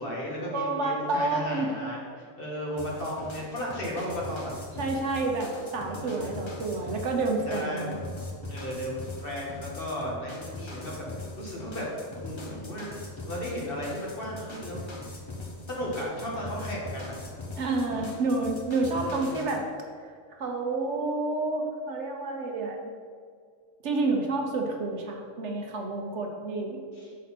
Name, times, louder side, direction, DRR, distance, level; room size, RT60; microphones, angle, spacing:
voice 1, 0.0-4.5 5.8-6.4 7.4-8.0 8.5-11.9 12.2-14.8 15.7-17.1 18.9-19.4 26.9-27.1, equal, 45° left, -4 dB, 1.7 m, -35 dB
voice 2, 0.5-1.7 4.8-8.0 17.6-19.7 20.3-22.9 23.8-26.8, right 3 dB, 65° right, 2 dB, 1.1 m, -29 dB
sound 1, 2.8-19.6, left 2 dB, 25° left, 0.7 m, -41 dB
6.3 x 4.2 x 5.8 m, 2.1 s
omnidirectional pair, 1.3 m